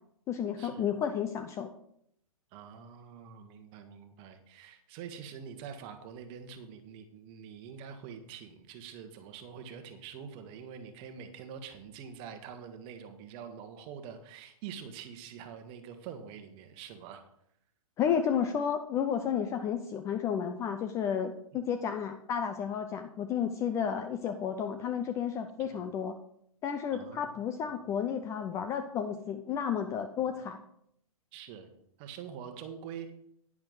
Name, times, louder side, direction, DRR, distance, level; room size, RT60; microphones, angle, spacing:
voice 1, 0.3-1.7 18.0-26.2 26.6-30.6, left 8 dB, 15° left, 7 dB, 0.4 m, -32 dB
voice 2, 2.5-17.2 25.6-25.7 26.9-27.3 30.2-30.3 31.3-31.7 32.0-33.1, right 7 dB, 30° right, 7 dB, 1.4 m, -45 dB
10.5 x 9.8 x 3.9 m, 0.72 s
figure-of-eight pair, 120°, 19 cm